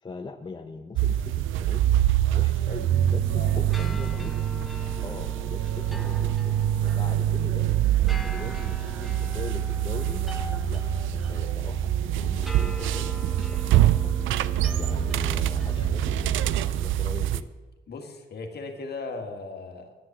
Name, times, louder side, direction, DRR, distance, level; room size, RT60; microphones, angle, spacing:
voice 1, 0.0-2.0 2.3-4.4 5.0-7.7 8.1-10.3 10.6-10.8 11.1-13.1 13.5-14.1 14.7-17.5, left 4 dB, 25° left, 5 dB, 0.8 m, -41 dB
sound 1, 0.9-17.4, right 12 dB, 80° right, 0.5 m, -25 dB
sound 2, 2.9-16.6, right 1 dB, ahead, 1.2 m, -37 dB
voice 2, 3.3-3.7 4.1-4.3 17.9-19.9, left 3 dB, 55° left, 4 dB, 1.9 m, -38 dB
9.9 x 9.7 x 7.2 m, 1.2 s
cardioid pair, 90°, 20 cm